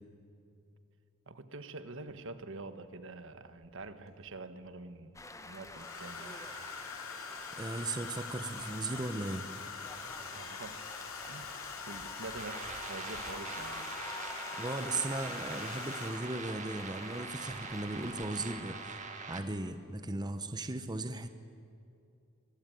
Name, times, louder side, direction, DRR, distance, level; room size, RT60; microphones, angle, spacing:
voice 1, 1.3-6.5 10.3-10.8 11.3-11.5 11.8-13.9, right 3 dB, 65° right, 10 dB, 1.4 m, -46 dB
Domestic sounds home sounds, 2.1-2.2 3.6-4.3 5.7-16.5 17.7-18.0 18.2-18.6, left 5 dB, 75° left, 2.9 m, -44 dB
sound 1, 5.1-19.4, left 2 dB, 15° left, 1.4 m, -48 dB
voice 2, 7.6-9.5 14.6-19.0 19.3-21.3, right 2 dB, 20° right, 9 dB, 0.9 m, -37 dB
sound 2, 12.4-19.4, right 5 dB, 35° right, 2.1 m, -44 dB
24.0 x 21.5 x 9.2 m, 2.5 s
head